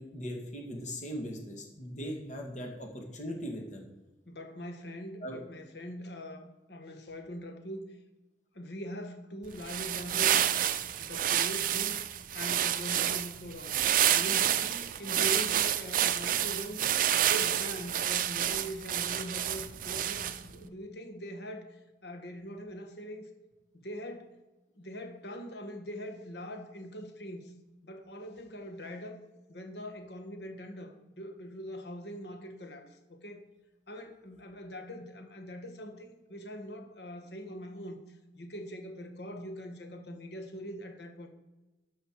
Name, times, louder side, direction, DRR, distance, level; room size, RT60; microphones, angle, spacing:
voice 1, 0.0-3.8 5.2-5.4, equal, 45° left, 2 dB, 1.9 m, -39 dB
voice 2, 4.3-8.0 8.5-12.0 12.3-13.8 14.1-16.8 17.1-23.3 23.7-24.3 24.8-27.5 27.8-29.2 29.5-33.5 33.9-38.0 38.3-41.3, equal, 65° left, 5 dB, 1.5 m, -42 dB
sound 1, 9.5-20.5, right 10 dB, 50° right, 0.5 m, -29 dB
13.0 x 5.6 x 4.7 m, 1.1 s
head